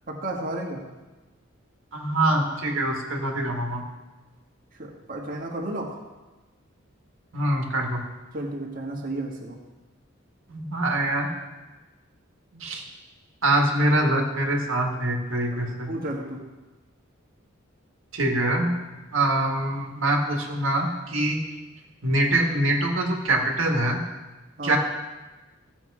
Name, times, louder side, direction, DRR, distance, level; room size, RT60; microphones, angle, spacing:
voice 1, 0.1-0.8 4.8-6.0 8.3-9.6 12.5-12.6 15.5-16.4 24.6-24.8, right 1 dB, 45° right, -2 dB, 1.5 m, -33 dB
voice 2, 1.9-3.8 7.3-8.0 10.5-11.3 12.6-12.8 13.4-15.9 18.1-18.7 19.1-21.4 22.0-24.0 24.6-24.8, right 1 dB, 75° right, 1 dB, 1.7 m, -24 dB
15.5 x 7.0 x 4.8 m, 1.2 s
head